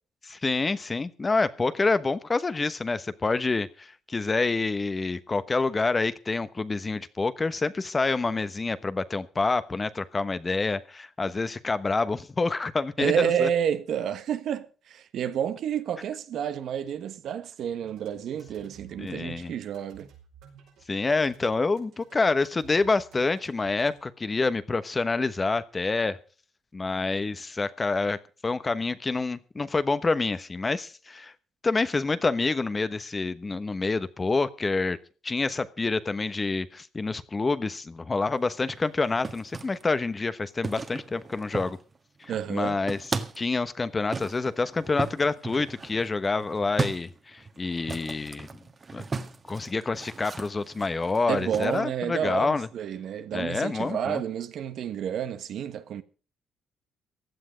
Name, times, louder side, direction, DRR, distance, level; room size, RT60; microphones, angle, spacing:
voice 1, 0.2-13.5 19.0-19.5 20.9-26.2 26.7-28.2 28.4-31.3 31.6-35.0 35.2-41.8 42.2-43.0 43.4-48.5 48.9-49.0 49.5-52.7 53.3-54.2, left 3 dB, 25° left, 1.1 m, -27 dB
voice 2, 13.0-20.1 42.3-42.8 51.3-56.0, right 9 dB, 70° right, 1.3 m, -30 dB
sound 1, 17.8-24.0, right 7 dB, 85° right, 5.3 m, -53 dB
sound 2, 38.5-39.8 40.6-42.0 42.2-43.5 44.1-51.8, right 4 dB, 35° right, 1.6 m, -36 dB
16.0 x 11.0 x 5.2 m
cardioid pair, 90°, 0 cm